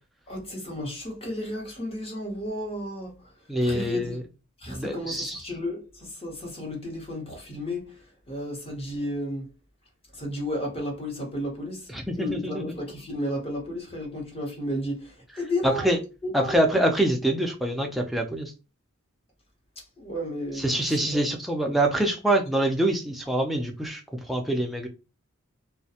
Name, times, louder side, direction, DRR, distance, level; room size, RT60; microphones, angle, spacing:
voice 1, 0.3-4.2 4.6-9.5 10.1-15.9 16.2-16.6 19.8-21.3, left 1 dB, 30° left, 0.8 m, -33 dB
voice 2, 3.5-4.2 4.7-5.4 11.9-12.6 15.6-16.0 16.3-18.5 20.6-24.9, right 1 dB, ahead, 0.4 m, -25 dB
2.3 x 2.1 x 2.7 m
head